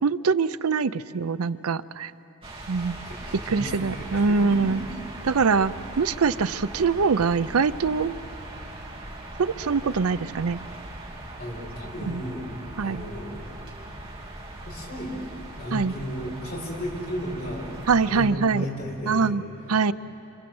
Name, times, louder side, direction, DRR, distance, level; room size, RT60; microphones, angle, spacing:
voice 1, 0.0-2.1 2.7-2.9 3.5-4.8 5.3-8.2 9.4-10.6 12.1-12.2 12.8-13.0 15.7-15.9 17.9-18.6 19.1-19.4 19.7-19.9, right 5 dB, 80° right, 15 dB, 0.6 m, -23 dB
sound 1, 2.4-18.3, right 1 dB, 25° right, 3.1 m, -40 dB
voice 2, 2.7-4.9 11.4-12.5 12.8-13.4 14.6-15.2 15.6-17.7 18.0-19.8, equal, 45° left, -2 dB, 6.6 m, -34 dB
27.5 x 26.5 x 7.8 m, 2.9 s
head